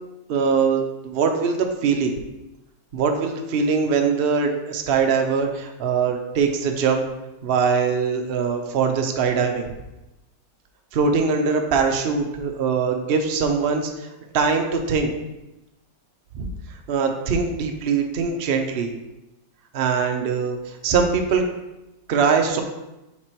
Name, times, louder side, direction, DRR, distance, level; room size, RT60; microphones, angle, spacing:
voice 1, 0.3-2.1 2.9-7.0 7.4-9.7 10.9-14.1 14.3-15.1 16.3-16.5 16.9-18.9 19.7-21.4 22.1-22.6, right 5 dB, 70° right, 3 dB, 0.5 m, -22 dB
6.0 x 3.6 x 4.4 m, 0.97 s
omnidirectional pair, 2.0 m